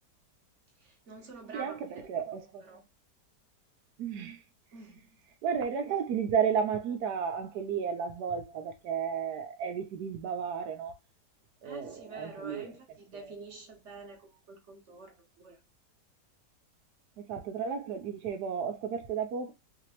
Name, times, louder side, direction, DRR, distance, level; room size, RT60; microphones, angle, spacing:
voice 1, 0.8-2.1 2.6-2.8 4.7-5.2 11.6-15.6, right 3 dB, 50° right, 1.1 m, -47 dB
voice 2, 1.5-2.8 4.0-4.4 5.4-11.0 11.6-12.7 17.2-19.5, right 7 dB, 75° right, 1.2 m, -33 dB
3.3 x 2.9 x 2.9 m
omnidirectional pair, 1.8 m